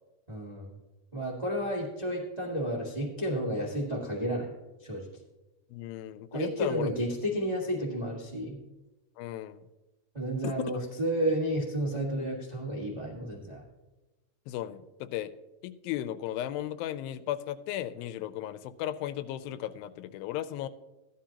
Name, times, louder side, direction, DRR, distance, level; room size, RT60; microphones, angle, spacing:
voice 1, 0.3-0.7 1.1-4.5 4.8-5.1 6.3-8.6 10.1-13.6, equal, 40° right, -3 dB, 0.5 m, -31 dB
voice 2, 5.7-6.9 9.2-9.6 10.4-10.5 12.2-12.3 14.5-15.3 15.6-20.7, left 12 dB, 85° left, 14 dB, 2.3 m, -35 dB
14.5 x 11.5 x 2.9 m, 1.1 s
omnidirectional pair, 4.1 m